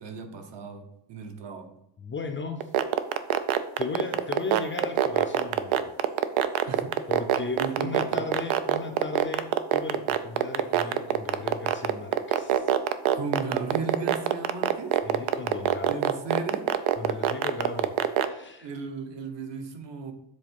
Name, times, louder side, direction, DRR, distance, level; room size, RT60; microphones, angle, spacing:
voice 1, 0.0-1.7 6.7-7.0 7.6-8.2 13.1-15.0 15.9-16.7 18.6-20.1, right 4 dB, 60° right, 5 dB, 1.1 m, -35 dB
voice 2, 2.0-2.7 3.8-5.9 6.6-6.7 7.1-12.7 15.0-16.1 17.0-18.0 18.2-18.8, left 4 dB, 25° left, 4 dB, 0.4 m, -36 dB
sound 1, 2.6-18.2, right 12 dB, 80° right, 0.7 m, -22 dB
7.5 x 3.7 x 5.2 m, 0.79 s
cardioid pair, 155°, 48 cm